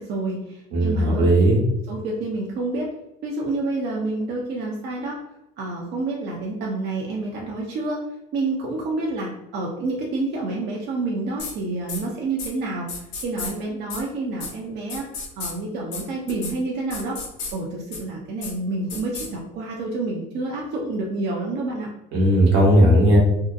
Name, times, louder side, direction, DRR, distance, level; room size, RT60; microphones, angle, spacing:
voice 1, 0.0-1.3 1.9-2.9 3.2-5.2 5.6-8.0 8.3-15.1 15.4-17.2 17.5-21.9, right 2 dB, 60° right, -2 dB, 0.6 m, -28 dB
voice 2, 0.7-1.6 22.1-23.2, right 1 dB, 80° right, -3 dB, 1.0 m, -16 dB
sound 1, 11.4-11.5 11.9-12.0 12.4-12.5 12.9-13.5 13.9-14.0 14.4-14.5 14.9-15.5 15.9-16.0 16.3-16.5 16.9-17.5 17.9-18.0 18.4-18.5 18.9-19.3, left 4 dB, 65° left, 0.8 m, -32 dB
2.7 x 2.1 x 2.5 m, 0.88 s
supercardioid pair, 85°, 20 cm